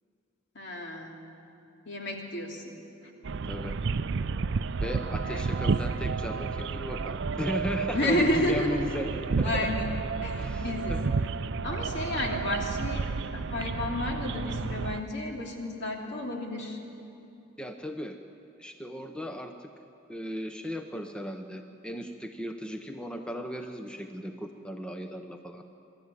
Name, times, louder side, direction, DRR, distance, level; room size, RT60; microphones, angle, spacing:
voice 1, 0.5-1.2 1.9-2.7 3.0-3.1 5.2-5.5 7.9-8.8 9.4-9.9 10.2-11.0 11.6-13.1 13.3-16.8, left 1 dB, 60° left, 0 dB, 2.9 m, -31 dB
sound 1, 3.2-15.0, right 4 dB, 60° right, 0.5 m, -31 dB
voice 2, 4.8-9.7 10.3-11.0 17.6-18.2 18.6-19.7 20.1-25.7, equal, 5° left, 5 dB, 0.7 m, -36 dB
23.5 x 13.0 x 9.7 m, 2.7 s
head